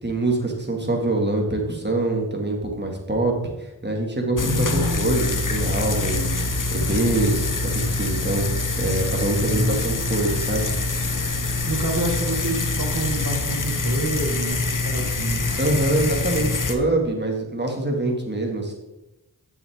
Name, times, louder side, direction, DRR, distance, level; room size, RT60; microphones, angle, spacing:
voice 1, 0.0-10.7 15.6-18.7, right 2 dB, 25° right, 1 dB, 2.3 m, -24 dB
sound 1, 4.4-16.7, left 3 dB, 55° left, 0.9 m, -25 dB
voice 2, 4.4-5.0 9.5-10.0 11.7-15.5 16.4-16.6, right 1 dB, 55° right, 2 dB, 2.0 m, -28 dB
9.8 x 7.1 x 3.7 m, 0.95 s
wide cardioid pair, 45°, 39 cm